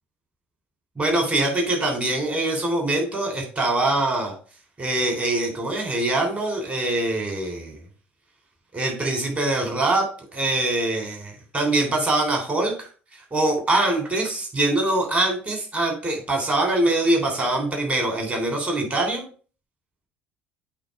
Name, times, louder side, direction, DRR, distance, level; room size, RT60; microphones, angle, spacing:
voice 1, 1.0-4.3 4.8-7.8 8.7-10.1 10.3-12.9 13.3-19.2, right 2 dB, 30° right, 2 dB, 3.4 m, -23 dB
8.7 x 3.2 x 5.4 m, 0.39 s
hypercardioid pair, 65°, 6 cm